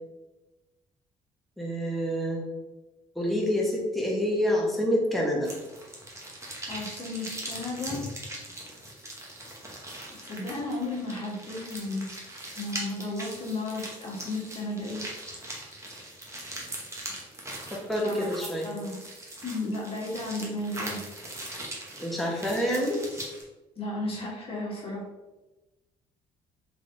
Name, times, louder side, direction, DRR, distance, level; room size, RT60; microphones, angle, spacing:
voice 1, 1.6-2.5 3.1-5.5 17.7-18.7 22.0-23.0, equal, ahead, -3 dB, 1.2 m, -27 dB
sound 1, 5.4-23.4, right 1 dB, 20° right, 1.0 m, -41 dB
voice 2, 6.7-8.0 10.2-15.0 18.0-18.3 18.6-19.0 19.4-21.0 23.8-25.0, left 2 dB, 40° left, -3 dB, 1.4 m, -34 dB
3.5 x 3.1 x 2.7 m, 1.1 s
supercardioid pair, 75°, 15 cm